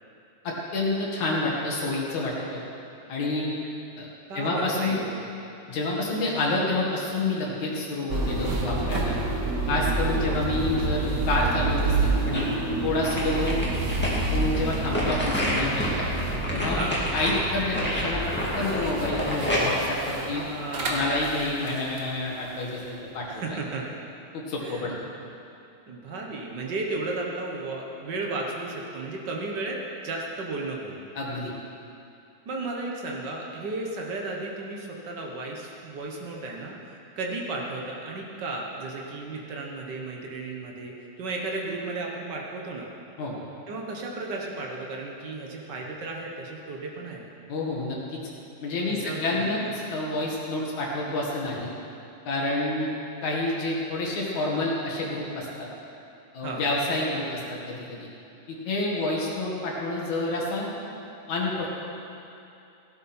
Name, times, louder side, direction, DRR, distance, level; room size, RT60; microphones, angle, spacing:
voice 1, 0.4-2.6 3.1-3.6 4.0-4.1 4.3-5.0 5.7-9.2 9.7-12.5 12.8-13.7 14.3-15.9 16.5-16.8 17.1-18.2 18.5-20.4 20.9-23.4 24.3-24.9 31.1-31.5 43.2-43.4 47.5-48.2 48.6-51.7 52.3-52.9 53.2-55.7 56.3-58.1 58.5-60.7 61.3-61.7, left 2 dB, 60° left, -3 dB, 3.2 m, -28 dB
voice 2, 4.3-5.2 10.1-10.5 16.7-17.0 20.1-21.3 23.3-23.8 24.6-24.9 25.9-31.0 32.4-36.8 37.2-42.9 43.7-47.2 48.9-49.7 56.4-56.6, right 2 dB, 70° right, -1 dB, 1.0 m, -34 dB
sound 1, 8.1-22.1, right 2 dB, 55° right, 1.2 m, -29 dB
sound 2, 12.1-12.6 13.0-21.1 21.5-21.6, left 1 dB, 5° left, 1.9 m, -29 dB
17.5 x 12.5 x 4.4 m, 2.7 s
omnidirectional pair, 4.0 m